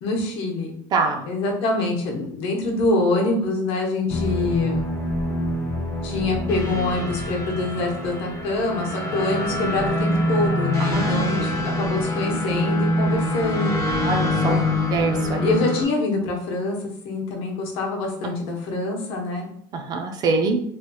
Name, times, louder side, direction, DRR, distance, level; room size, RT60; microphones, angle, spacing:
voice 1, 0.0-0.7 1.2-4.9 6.0-13.8 14.4-14.7 15.4-16.8 17.0-19.5, left 2 dB, 60° left, 1 dB, 0.9 m, -25 dB
voice 2, 0.9-1.2 10.9-11.2 14.0-14.6 14.9-15.5 19.7-20.6, right 4 dB, 40° right, 4 dB, 0.5 m, -24 dB
sound 1, 4.1-15.8, left 1 dB, 25° left, 0.7 m, -25 dB
3.2 x 2.7 x 2.3 m, 0.65 s
supercardioid pair, 125°, 11 cm